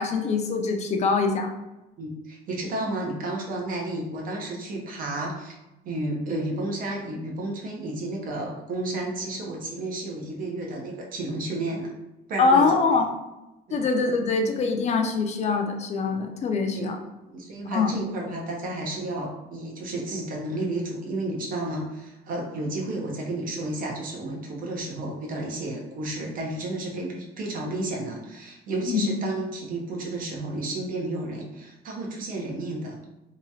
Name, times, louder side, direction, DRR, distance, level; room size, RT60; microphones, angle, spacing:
voice 1, 0.0-1.5 12.4-13.1 13.7-17.0 17.7-17.9 28.9-29.1, left 4 dB, 40° left, 4 dB, 0.4 m, -23 dB
voice 2, 2.0-5.6 5.8-11.9 12.3-12.9 13.7-13.8 16.7-16.9 17.3-33.0, right 2 dB, 55° right, -1 dB, 0.8 m, -32 dB
2.9 x 2.3 x 2.7 m, 1.0 s
cardioid pair, 110°, 17 cm